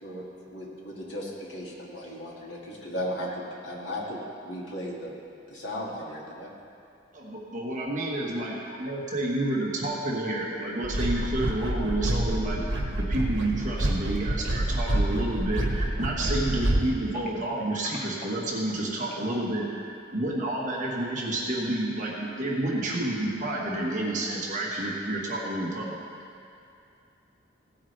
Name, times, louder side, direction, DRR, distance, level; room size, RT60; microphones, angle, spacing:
voice 1, 0.0-5.1 5.5-6.5, equal, 65° left, -4 dB, 2.1 m, -36 dB
voice 2, 7.1-12.6 13.0-19.7 20.1-25.9, right 1 dB, 40° right, -4 dB, 1.4 m, -29 dB
sound 1, 10.8-16.9, right 1 dB, 85° right, 1.2 m, -27 dB
voice 3, 17.7-18.1 19.1-19.4 21.0-21.1, left 1 dB, 45° left, -3 dB, 1.7 m, -43 dB
16.5 x 8.6 x 3.3 m, 2.6 s
head